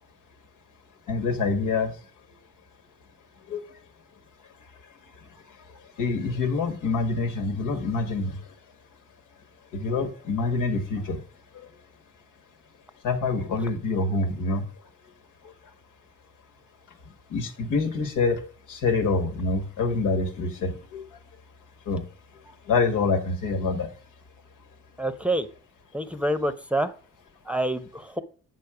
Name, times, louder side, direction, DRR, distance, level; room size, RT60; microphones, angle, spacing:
voice 1, 1.1-1.9 3.5-3.6 6.0-8.4 9.7-11.2 11.5-11.7 13.0-14.6 17.3-18.4 18.7-21.0 21.9-22.0 22.7-23.9, left 3 dB, 85° left, 4 dB, 1.6 m, -26 dB
voice 2, 25.0-25.5 25.9-26.9 27.5-28.2, right 1 dB, 5° right, 10 dB, 0.7 m, -27 dB
8.2 x 6.3 x 4.9 m, 0.39 s
cardioid pair, 90°, 30 cm